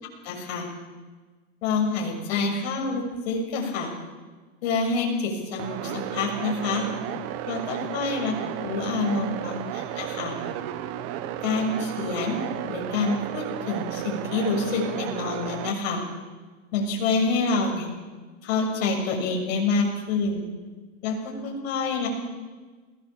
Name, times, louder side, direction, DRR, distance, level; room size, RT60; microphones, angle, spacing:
voice 1, 0.2-0.7 1.6-3.9 4.6-6.9 7.5-8.3 8.6-10.4 11.4-12.4 12.7-16.0 16.7-17.9 18.4-20.4 21.0-21.2 21.4-22.1, left 4 dB, 60° left, 1 dB, 6.8 m, -27 dB
sound 1, 5.6-15.7, right 12 dB, 40° right, 1.5 m, -33 dB
21.0 x 18.0 x 7.2 m, 1.3 s
hypercardioid pair, 125°, 36 cm